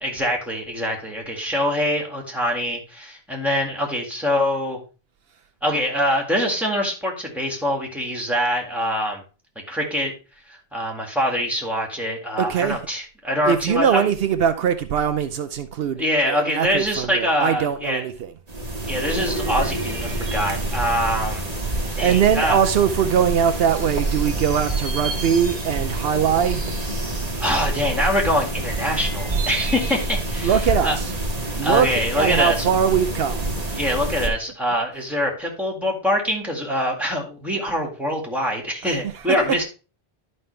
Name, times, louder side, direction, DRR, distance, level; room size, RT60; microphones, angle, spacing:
voice 1, 0.0-4.8 5.6-9.2 9.7-10.1 10.5-14.1 16.0-18.1 18.9-21.5 22.0-22.6 27.4-31.0 31.6-32.7 33.8-39.6, equal, ahead, 2.0 m, -24 dB
voice 2, 12.4-12.8 13.5-18.3 22.0-26.7 30.4-31.1 31.6-31.9 32.1-33.4, right 8 dB, 75° right, 0.8 m, -21 dB
sound 1, 18.5-34.3, right 2 dB, 40° right, 1.3 m, -27 dB
11.0 x 5.4 x 3.2 m
omnidirectional pair, 1.0 m